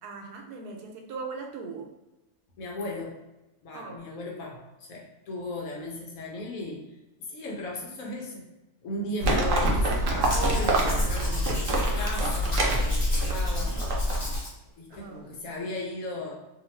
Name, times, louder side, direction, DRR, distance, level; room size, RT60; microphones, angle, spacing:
voice 1, 0.0-1.9 3.7-4.1 14.9-15.3, right 4 dB, 90° right, 3 dB, 1.1 m, -39 dB
voice 2, 2.6-3.2 3.6-6.9 7.2-8.4 8.8-13.8 14.8-16.3, left 1 dB, 70° left, -2 dB, 1.1 m, -36 dB
Livestock farm animals working animals, 9.2-14.4, right 1 dB, 65° right, 0.9 m, -25 dB
Domestic sounds home sounds, 10.2-14.5 14.9-15.0, left 1 dB, 40° left, 0.6 m, -38 dB
2.7 x 2.4 x 3.1 m, 0.98 s
omnidirectional pair, 1.6 m